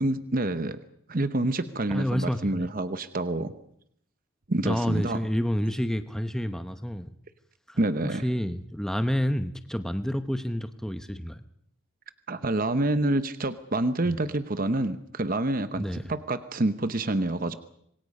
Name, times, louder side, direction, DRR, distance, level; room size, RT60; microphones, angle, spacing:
voice 1, 0.0-0.8 1.1-3.5 4.5-5.2 7.8-8.2 12.3-17.5, right 2 dB, 40° right, 11 dB, 0.9 m, -27 dB
voice 2, 1.9-2.7 4.6-7.1 7.7-7.8 8.0-11.4 14.0-14.1 15.8-16.0, equal, ahead, 9 dB, 0.8 m, -29 dB
26.5 x 22.0 x 5.4 m, 0.69 s
head